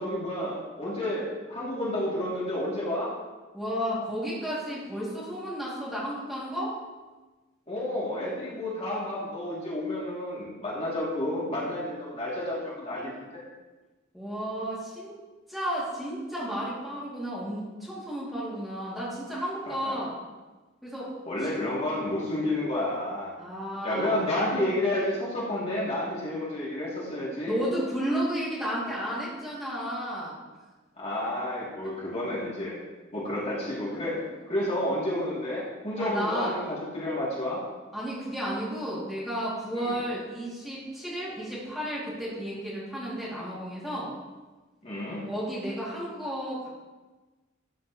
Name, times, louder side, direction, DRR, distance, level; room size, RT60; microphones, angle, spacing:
voice 1, 0.0-3.1 7.7-13.4 19.7-19.8 21.2-23.3 23.8-27.5 31.0-32.8 33.1-34.2 34.5-37.6 39.8-40.0 44.8-45.2, left 1 dB, 35° left, -7 dB, 3.0 m, -30 dB
voice 2, 3.5-6.8 14.1-15.2 15.5-20.1 20.8-21.1 23.4-24.3 27.5-30.4 36.0-36.6 37.9-44.1 45.2-46.7, equal, ahead, -8 dB, 2.8 m, -32 dB
13.0 x 8.4 x 3.2 m, 1.2 s
head